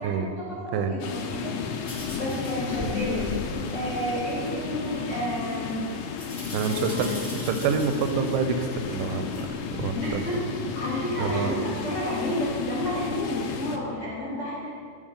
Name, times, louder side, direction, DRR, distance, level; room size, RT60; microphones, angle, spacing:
voice 1, 0.0-1.6 2.1-3.4 3.7-5.9 6.6-7.1 9.9-10.4 10.7-14.7, left 1 dB, 50° left, -8 dB, 0.8 m, -31 dB
sound 1, 1.0-13.8, left 6 dB, 80° left, 2.0 m, -33 dB
sound 2, 1.8-3.8 4.4-5.0 6.2-8.4 9.3-10.2 10.7-10.8 11.3-11.4 12.5-12.6, left 1 dB, 25° left, 1.9 m, -38 dB
voice 2, 6.5-9.5 9.8-10.2 11.2-11.5, right 5 dB, 90° right, 8 dB, 2.2 m, -27 dB
10.5 x 3.7 x 5.0 m, 2.2 s
omnidirectional pair, 3.7 m